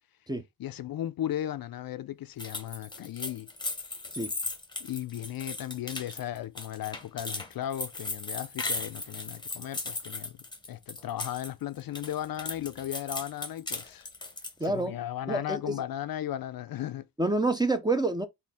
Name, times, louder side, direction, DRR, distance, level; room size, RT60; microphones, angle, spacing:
voice 1, 0.6-3.5 4.8-10.4 10.7-14.1 14.6-17.1, left 12 dB, 60° left, 0.5 m, -36 dB
sound 1, 2.4-11.5 11.8-14.6, left 3 dB, 10° left, 0.9 m, -37 dB
voice 2, 14.6-14.9 15.3-15.8 17.2-18.3, right 2 dB, 10° right, 0.6 m, -27 dB
4.2 x 2.7 x 3.4 m
cardioid pair, 100°, 40 cm